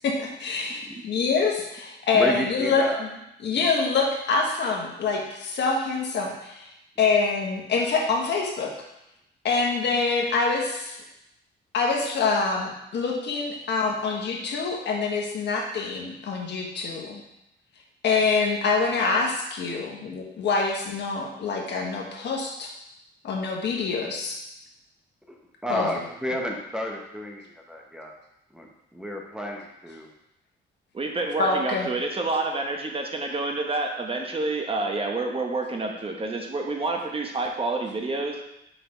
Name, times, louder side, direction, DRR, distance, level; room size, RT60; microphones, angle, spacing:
voice 1, 0.0-3.1 3.4-6.7 7.0-8.7 9.4-11.0 11.7-17.2 18.0-22.7 23.2-24.4 25.7-26.0 31.4-31.9, left 4 dB, 60° left, 0 dB, 1.3 m, -25 dB
voice 2, 2.1-3.0 25.3-25.4 25.6-28.1 28.5-30.1, equal, 5° right, 0 dB, 1.0 m, -31 dB
voice 3, 30.9-38.4, right 2 dB, 30° right, 2 dB, 0.9 m, -28 dB
5.1 x 3.9 x 5.0 m, 0.85 s
cardioid pair, 90°, 20 cm